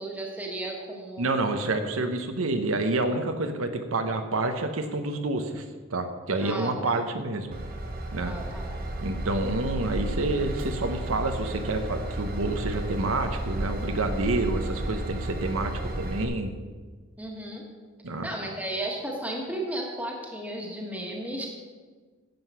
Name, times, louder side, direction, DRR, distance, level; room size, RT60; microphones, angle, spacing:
voice 1, 0.0-1.3 6.4-7.0 8.2-8.7 17.2-17.6 18.2-21.5, right 1 dB, 5° right, 0 dB, 1.5 m, -34 dB
voice 2, 1.2-5.6 5.9-7.5 8.1-8.3 9.0-16.5 18.0-18.3, right 2 dB, 80° right, 7 dB, 0.9 m, -28 dB
Train / Engine, 7.5-16.2, right 1 dB, 45° right, 1.0 m, -33 dB
10.5 x 7.9 x 5.7 m, 1.4 s
head